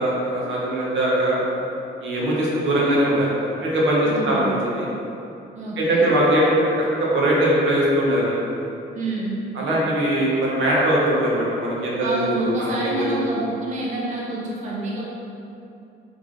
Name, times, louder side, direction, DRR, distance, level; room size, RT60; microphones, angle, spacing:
voice 1, 0.0-1.5 2.0-4.9 5.8-8.4 9.5-13.1, right 1 dB, 70° right, -5 dB, 1.0 m, -21 dB
voice 2, 4.0-4.6 5.6-6.1 8.9-9.4 12.0-15.1, right 2 dB, 40° right, -4 dB, 0.5 m, -28 dB
3.4 x 2.4 x 3.6 m, 2.8 s
cardioid pair, 90°, 20 cm